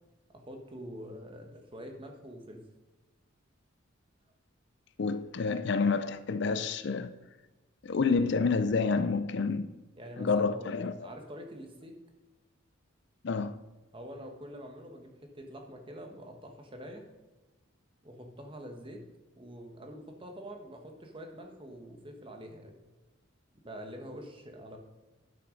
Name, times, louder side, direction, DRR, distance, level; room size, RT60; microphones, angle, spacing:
voice 1, 0.3-2.6 10.0-12.0 13.9-17.0 18.0-19.0 19.3-22.8 23.6-24.8, equal, 25° right, 1.2 m, -45 dB
voice 2, 5.0-7.1 7.8-9.7 10.2-11.1 13.2-13.5, left 4 dB, 55° left, 0.4 m, -28 dB
12.0 x 5.7 x 5.1 m
head